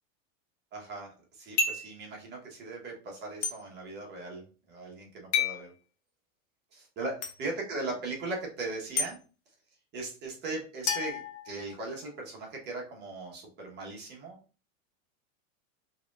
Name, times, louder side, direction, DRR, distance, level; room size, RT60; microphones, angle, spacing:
voice 1, 0.7-5.7 6.7-9.2 9.9-14.4, right 2 dB, 25° right, -1 dB, 1.1 m, -39 dB
sound 1, 1.6-2.0 3.4-3.6 5.3-5.6 7.2-7.3 9.0-9.1 10.9-11.9, left 5 dB, 55° left, 1.1 m, -30 dB
4.7 x 3.0 x 2.4 m, 0.35 s
supercardioid pair, 155°, 40 cm